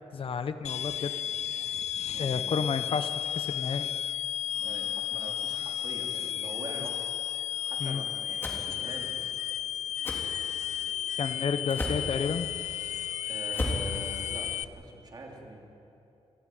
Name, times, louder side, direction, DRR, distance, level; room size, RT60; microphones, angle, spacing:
voice 1, 0.1-1.1 2.2-3.9 7.8-8.0 11.2-12.5, left 6 dB, 50° left, 10 dB, 0.9 m, -31 dB
sound 1, 0.6-14.6, left 10 dB, 80° left, 0.5 m, -33 dB
voice 2, 2.1-2.7 4.5-7.2 7.6-9.4 11.4-11.5 13.3-15.6, right 2 dB, 35° right, 0 dB, 3.5 m, -44 dB
sound 2, 8.4-8.6 10.0-10.2 11.7-12.1 13.5-13.9, left 1 dB, 20° left, 3.5 m, -32 dB
28.0 x 15.0 x 9.5 m, 2.8 s
wide cardioid pair, 165°, 12 cm